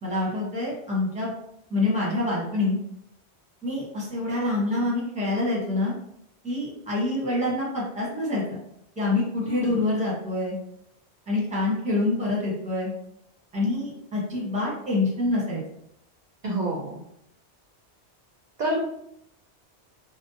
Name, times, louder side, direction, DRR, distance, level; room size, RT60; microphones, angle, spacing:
voice 1, 0.0-1.3 1.7-2.8 3.6-5.9 6.4-8.6 9.0-10.6 11.3-12.9 13.5-15.6, left 2 dB, 10° right, -5 dB, 0.7 m, -26 dB
voice 2, 9.4-9.8 16.4-17.0 18.6-18.8, right 1 dB, 55° right, -2 dB, 0.5 m, -28 dB
2.7 x 2.0 x 2.6 m, 0.77 s
omnidirectional pair, 1.1 m